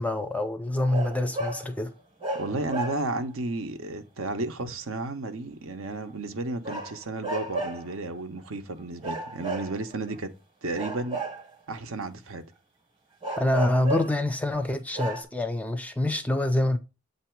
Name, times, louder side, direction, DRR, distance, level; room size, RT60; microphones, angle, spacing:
voice 1, 0.0-1.9 13.4-16.8, left 1 dB, 5° left, 0.4 m, -26 dB
sound 1, 0.9-1.7 2.2-3.3 6.6-7.9 9.0-10.1 10.7-11.8 13.2-14.2 14.6-14.7 14.9-15.2, right 2 dB, 25° right, 1.0 m, -33 dB
voice 2, 2.4-10.3 10.6-11.2 11.7-12.4, right 2 dB, 70° right, 0.7 m, -33 dB
7.7 x 2.8 x 4.4 m
head